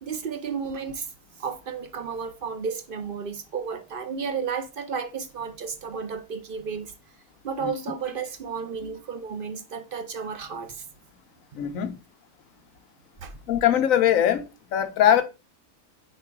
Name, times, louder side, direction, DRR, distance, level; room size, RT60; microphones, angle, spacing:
voice 1, 0.0-1.1 1.4-6.9 7.4-10.9 13.2-13.4, right 6 dB, 45° right, 0.8 m, -33 dB
voice 2, 11.5-12.0 13.5-14.5 14.7-15.2, left 10 dB, 70° left, 1.2 m, -21 dB
4.7 x 4.6 x 4.6 m
omnidirectional pair, 1.5 m